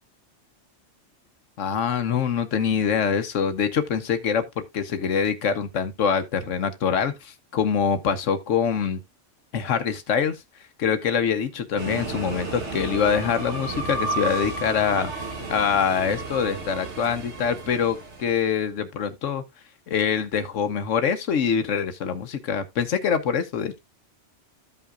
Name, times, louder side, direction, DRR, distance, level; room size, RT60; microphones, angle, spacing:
voice 1, 1.6-9.0 9.5-10.4 10.8-19.4 19.9-23.8, left 7 dB, 85° left, 1.2 m, -24 dB
sound 1, 11.8-18.4, right 3 dB, 65° right, 2.2 m, -32 dB
14.0 x 5.6 x 2.3 m
omnidirectional pair, 1.3 m